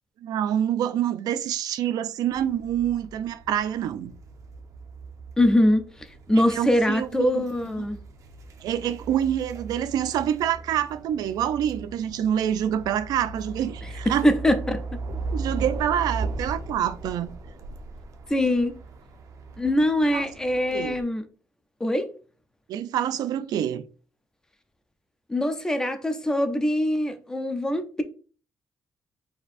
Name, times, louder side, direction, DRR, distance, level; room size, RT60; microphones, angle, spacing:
voice 1, 0.2-4.1 6.5-7.4 7.8-7.9 8.6-14.3 15.3-17.3 20.1-20.2 20.7-21.0 22.7-23.8, right 10 dB, 70° right, 0.4 m, -26 dB
sound 1, 2.3-21.0, right 3 dB, 55° right, 0.8 m, -38 dB
voice 2, 5.4-5.8 6.3-8.0 14.2-14.8 18.3-18.7 19.6-21.2 21.8-22.1 25.3-28.0, left 1 dB, 10° left, 0.5 m, -23 dB
4.4 x 4.3 x 2.5 m
cardioid pair, 165°, 7 cm